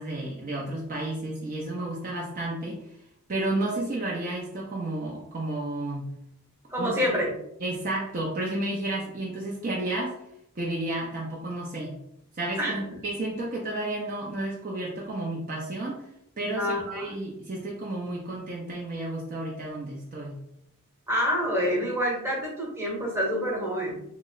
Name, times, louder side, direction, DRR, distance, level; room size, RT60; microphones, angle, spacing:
voice 1, 0.0-2.8 3.3-6.1 6.8-7.1 7.6-10.2 10.6-12.0 12.3-16.1 16.4-20.4, right 1 dB, 40° right, -3 dB, 0.5 m, -32 dB
voice 2, 6.7-7.3 12.6-13.0 16.6-17.1 21.1-24.0, equal, 10° right, -5 dB, 0.9 m, -27 dB
3.0 x 2.0 x 3.8 m, 0.76 s
head